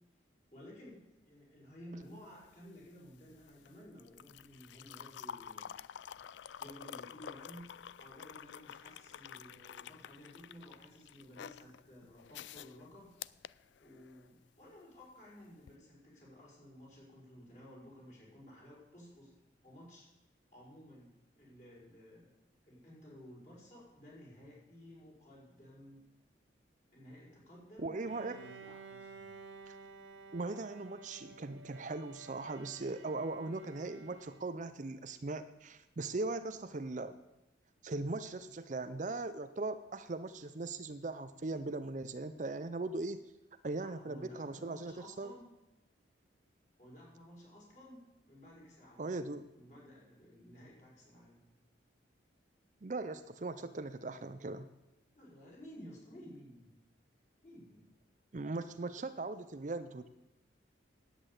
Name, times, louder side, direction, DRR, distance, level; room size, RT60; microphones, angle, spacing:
voice 1, 0.5-5.7 6.6-7.7 8.0-13.1 13.8-19.3 19.6-20.1 20.5-22.3 22.6-26.0 26.9-27.9 28.3-29.3 43.8-45.4 46.8-49.1 49.5-51.4 55.1-56.7 57.4-57.8, equal, 40° left, -5 dB, 5.6 m, -54 dB
sound 1, 2.0-14.3 15.6-15.7, left 9 dB, 70° left, 0.3 m, -49 dB
voice 2, 27.8-28.4 29.7-29.8 30.3-37.2 37.8-43.2 43.6-45.3 49.0-49.5 52.8-54.7 58.3-60.1, right 3 dB, 40° right, 11 dB, 0.5 m, -39 dB
Bowed string instrument, 28.1-34.8, right 4 dB, 80° right, 1.1 m, -53 dB
10.0 x 8.5 x 8.8 m, 0.96 s
head